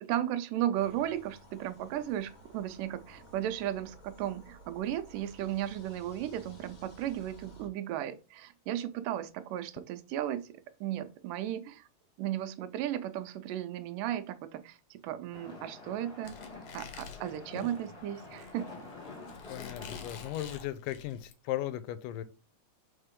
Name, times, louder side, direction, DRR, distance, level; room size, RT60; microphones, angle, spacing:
voice 1, 0.0-11.9 12.2-16.4 16.7-18.7, right 12 dB, 85° right, 2.2 m, -35 dB
sound 1, 0.7-7.7, right 1 dB, 45° left, 1.2 m, -54 dB
sound 2, 15.3-20.6, left 3 dB, 20° left, 1.9 m, -47 dB
Squeak, 16.2-21.3, left 8 dB, 65° left, 1.6 m, -49 dB
voice 2, 19.5-22.2, left 13 dB, 90° left, 2.3 m, -37 dB
6.6 x 4.4 x 3.6 m
omnidirectional pair, 3.8 m